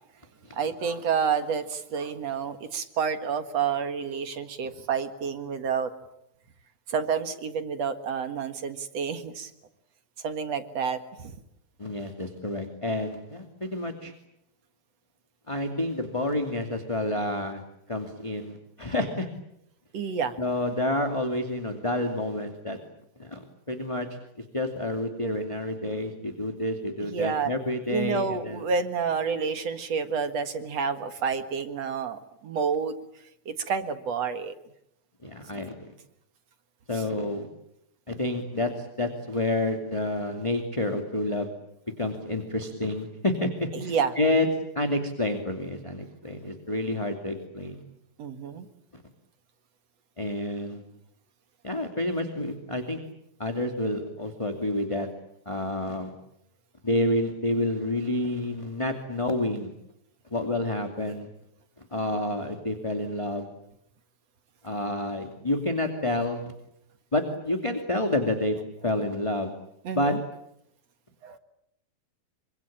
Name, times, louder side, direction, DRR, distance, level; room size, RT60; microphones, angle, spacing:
voice 1, 0.5-5.9 6.9-9.5 10.2-11.3 19.9-20.4 27.1-27.5 27.9-33.0 33.5-34.5 36.9-37.0 43.7-44.1 48.2-48.7 69.8-70.2 71.2-71.4, right 6 dB, 55° right, 9 dB, 2.5 m, -29 dB
voice 2, 11.8-14.1 15.5-17.6 17.9-19.3 20.4-22.8 23.2-23.4 23.7-24.1 24.5-28.6 35.2-35.9 36.9-37.5 38.1-41.5 42.0-44.5 44.7-47.8 50.2-50.8 51.6-53.0 53.4-55.1 55.4-56.1 56.8-59.7 60.3-61.3 61.9-63.5 64.6-66.5 67.1-68.6 68.8-69.5 69.9-70.1, left 1 dB, 10° left, 4 dB, 1.8 m, -29 dB
26.5 x 25.5 x 8.7 m, 0.78 s
omnidirectional pair, 4.1 m